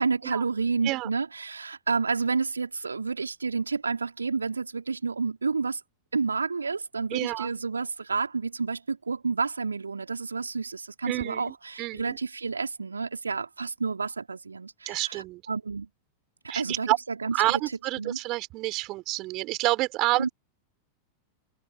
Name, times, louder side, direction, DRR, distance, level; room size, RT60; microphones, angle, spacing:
voice 1, 0.0-5.8 6.1-15.9 16.4-17.6 18.0-18.2 20.2-20.3, right 4 dB, 75° right, 3.9 m, -30 dB
voice 2, 7.1-7.5 11.1-12.2 14.9-15.4 16.5-17.0 17.3-20.3, right 20 dB, 40° right, 5.6 m, -29 dB
figure-of-eight pair, 90°, 0 cm